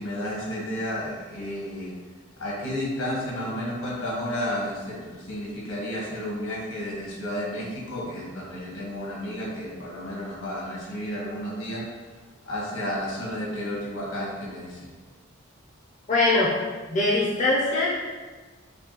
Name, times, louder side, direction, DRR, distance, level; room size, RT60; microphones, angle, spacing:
voice 1, 0.0-1.9 2.4-11.8 12.5-14.9, left 1 dB, 80° left, -4 dB, 1.2 m, -32 dB
voice 2, 16.1-16.5 16.9-18.0, left 2 dB, 35° left, -5 dB, 0.4 m, -22 dB
5.3 x 2.2 x 2.8 m, 1.4 s
head